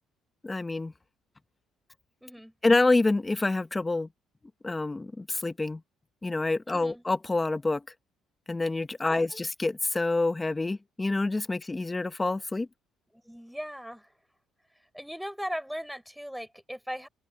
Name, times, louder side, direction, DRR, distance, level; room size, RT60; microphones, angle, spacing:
voice 1, 0.4-0.9 2.6-4.1 4.6-5.8 6.2-7.8 8.5-12.7, left 2 dB, 15° left, 1.5 m, -27 dB
voice 2, 2.2-2.5 6.7-7.0 9.0-9.4 13.3-14.1 14.9-17.1, equal, ahead, 5.3 m, -38 dB
open air
cardioid pair, 120°, 0 cm